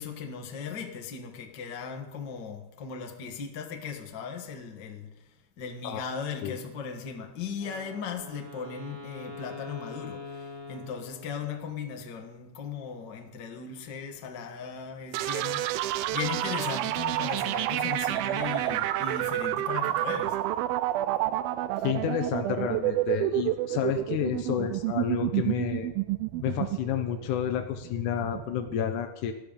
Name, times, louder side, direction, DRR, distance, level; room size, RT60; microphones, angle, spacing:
voice 1, 0.0-5.3 5.6-20.4 21.8-21.9, left 6 dB, 50° left, 1.3 m, -37 dB
Wind instrument woodwind instrument, 7.6-11.7, left 2 dB, 40° right, 6.3 m, -43 dB
sound 1, 15.1-28.7, right 14 dB, 80° right, 2.3 m, -29 dB
voice 2, 21.8-25.9 26.4-29.3, left 9 dB, 75° left, 1.9 m, -30 dB
19.0 x 13.0 x 5.3 m
omnidirectional pair, 4.5 m